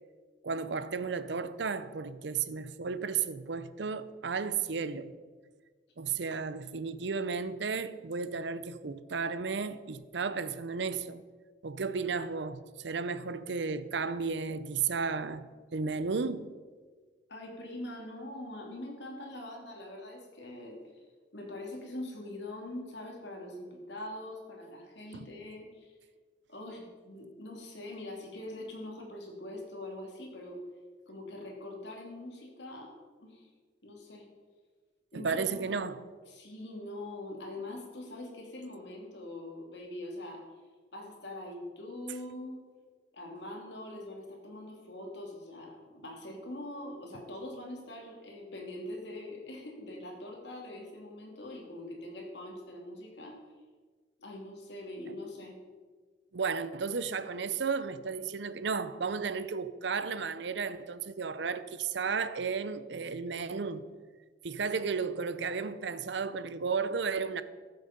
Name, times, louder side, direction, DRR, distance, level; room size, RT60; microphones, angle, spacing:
voice 1, 0.4-5.1 6.0-11.2 11.6-16.5 25.1-25.2 35.1-36.0 56.3-63.8 64.4-67.4, right 5 dB, 70° right, 0.6 m, -33 dB
voice 2, 17.3-26.0 26.5-30.6 31.1-32.9 33.2-33.5 33.8-34.3 35.1-35.8 36.3-40.7 40.9-42.6 43.1-53.4 54.2-55.6, left 1 dB, 70° left, 2.8 m, -43 dB
14.0 x 7.7 x 5.2 m
head